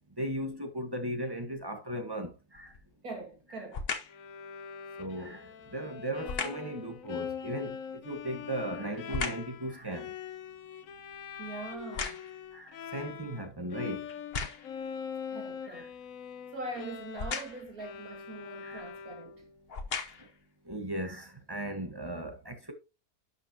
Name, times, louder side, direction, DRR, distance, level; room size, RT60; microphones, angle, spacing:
voice 1, 0.2-2.7 5.0-5.4 5.7-7.7 8.1-10.1 12.5-14.0 15.7-15.9 18.6-18.8 20.7-22.7, right 1 dB, 15° right, 1.1 m, -37 dB
sound 1, 2.5-2.9 3.7-4.2 6.2-6.7 8.1-9.6 10.0-12.5 13.2-13.3 14.1-14.8 17.1-17.7 18.8-18.9 19.6-20.4 21.0-21.1, left 5 dB, 45° left, 1.0 m, -37 dB
voice 2, 3.0-3.9 11.4-12.2 15.3-15.9 16.5-19.4, right 2 dB, 65° right, 2.8 m, -42 dB
Bowed string instrument, 4.1-13.5 13.7-19.5, left 7 dB, 65° left, 1.1 m, -43 dB
11.5 x 5.5 x 2.8 m
omnidirectional pair, 1.7 m